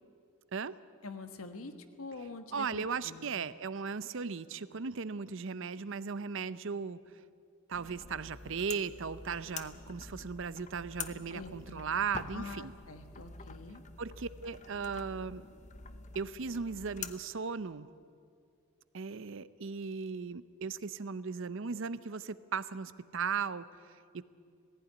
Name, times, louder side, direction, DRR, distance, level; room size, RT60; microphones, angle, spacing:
voice 1, 1.0-3.3 11.3-11.8 12.3-13.8, left 3 dB, 75° left, 8 dB, 1.4 m, -45 dB
voice 2, 2.5-7.2 7.7-12.7 14.0-15.5 16.1-17.9 18.9-24.2, right 5 dB, 60° right, 16 dB, 0.6 m, -37 dB
sound 1, 7.7-17.1, left 5 dB, 35° left, 0.8 m, -47 dB
18.0 x 15.5 x 9.8 m, 2.3 s
head